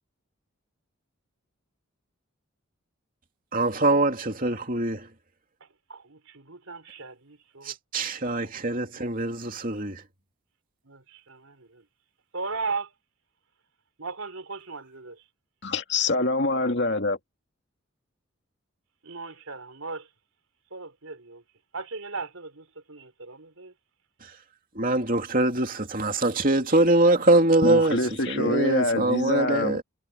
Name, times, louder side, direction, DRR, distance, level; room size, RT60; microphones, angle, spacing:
voice 1, 3.5-5.1 7.6-10.0 24.2-24.3 24.7-29.8, right 2 dB, 40° right, 2.9 m, -23 dB
voice 2, 5.6-7.7 8.5-9.1 10.9-11.8 12.3-12.9 14.0-15.2 19.0-20.1 20.7-21.4 21.7-23.7, right 4 dB, 80° right, 3.8 m, -37 dB
voice 3, 15.6-17.2 27.6-29.8, left 2 dB, 55° left, 2.4 m, -25 dB
head